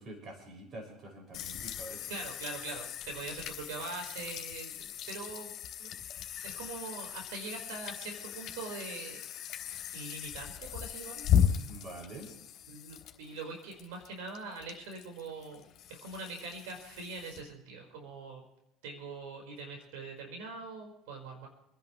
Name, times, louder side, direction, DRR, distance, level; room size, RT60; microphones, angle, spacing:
voice 1, 0.0-2.0 11.7-12.3, right 1 dB, 35° right, 2 dB, 6.4 m, -46 dB
sound 1, 1.3-17.4, left 9 dB, 50° left, 3.6 m, -36 dB
voice 2, 2.1-6.0 6.4-9.2 9.9-11.3 12.7-15.7 16.0-18.4 18.8-21.5, right 3 dB, 85° right, 2 dB, 5.0 m, -43 dB
28.5 x 11.0 x 3.3 m, 0.83 s
supercardioid pair, 125°, 0 cm